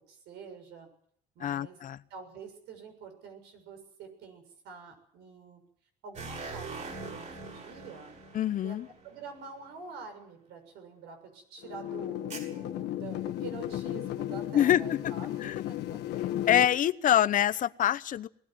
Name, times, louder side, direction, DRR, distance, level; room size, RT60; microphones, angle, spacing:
voice 1, 0.1-0.9 1.4-1.8 2.1-5.6 6.0-8.2 8.6-8.8 9.0-16.2, right 5 dB, 85° right, 5 dB, 7.0 m, -47 dB
voice 2, 1.4-2.0 8.3-8.9 14.5-15.1 15.4-15.6 16.5-18.3, left 11 dB, 50° left, 14 dB, 0.9 m, -25 dB
sound 1, 6.1-9.7 12.3-12.4, right 3 dB, 45° right, 8.0 m, -42 dB
sound 2, 11.6-16.7, left 13 dB, 85° left, 1.7 m, -34 dB
21.0 x 16.0 x 9.4 m, 0.66 s
cardioid pair, 110°, 17 cm